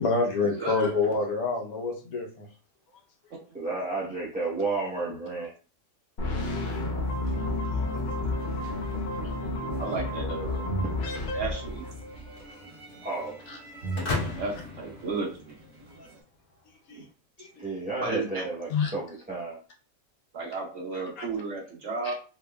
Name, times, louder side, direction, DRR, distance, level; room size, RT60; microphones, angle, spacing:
voice 1, 0.0-2.4 9.7-9.8 13.5-13.6 16.0-16.1 16.9-17.0 17.4-17.5 18.7-18.9 21.2-21.3, left 4 dB, 80° left, 1.3 m, -27 dB
voice 2, 0.6-0.9 9.8-10.7 11.3-11.8 14.2-15.5 18.0-18.4 20.3-22.1, right 3 dB, 60° right, 1.5 m, -33 dB
voice 3, 3.5-5.5 13.0-13.4 17.6-19.6, right 3 dB, 10° right, 0.5 m, -32 dB
sound 1, 6.2-12.3, left 2 dB, 45° left, 0.8 m, -31 dB
sound 2, 6.4-16.2, right 1 dB, 75° right, 1.7 m, -40 dB
sound 3, 14.0-15.9, left 3 dB, 60° left, 1.4 m, -34 dB
3.5 x 3.2 x 2.2 m
omnidirectional pair, 1.5 m